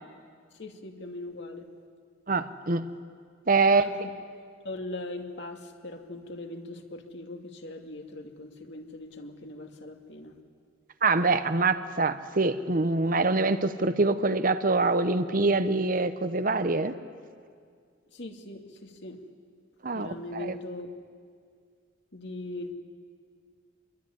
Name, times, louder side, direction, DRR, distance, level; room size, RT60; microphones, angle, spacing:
voice 1, 0.5-1.7 3.7-4.1 4.6-10.4 18.1-19.2 19.9-20.9 22.1-22.7, left 2 dB, 55° left, 4 dB, 2.3 m, -40 dB
voice 2, 2.3-2.9 3.5-3.8 11.0-16.9 19.8-20.5, right 3 dB, 40° right, 11 dB, 0.9 m, -25 dB
26.0 x 22.5 x 9.9 m, 2.1 s
head